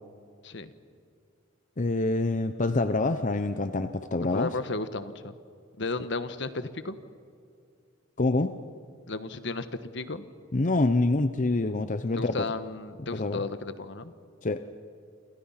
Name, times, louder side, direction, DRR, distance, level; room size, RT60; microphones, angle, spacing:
voice 1, 1.8-4.5 8.2-8.5 10.5-12.5 13.1-13.4 14.4-14.6, left 2 dB, 40° left, 10 dB, 0.8 m, -26 dB
voice 2, 4.3-5.3 5.8-7.0 9.1-10.2 12.1-14.1, left 3 dB, 65° left, 11 dB, 1.3 m, -34 dB
29.0 x 27.0 x 5.8 m, 2.3 s
head